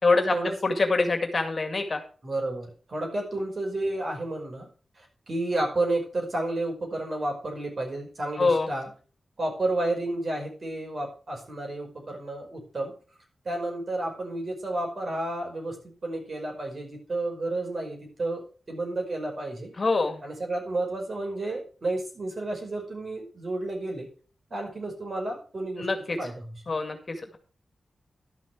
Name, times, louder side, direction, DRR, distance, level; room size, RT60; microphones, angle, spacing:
voice 1, 0.0-0.3 0.6-2.0 8.4-8.7 19.8-20.2 25.8-26.2 26.7-27.4, left 3 dB, 45° left, 6 dB, 2.1 m, -25 dB
voice 2, 2.2-4.7 5.0-8.9 9.4-12.9 13.5-15.8 16.0-19.7 20.2-24.1 24.5-25.9 26.2-26.6, right 2 dB, 50° right, 1 dB, 5.2 m, -31 dB
12.0 x 6.0 x 6.0 m, 0.39 s
cardioid pair, 70°, 0 cm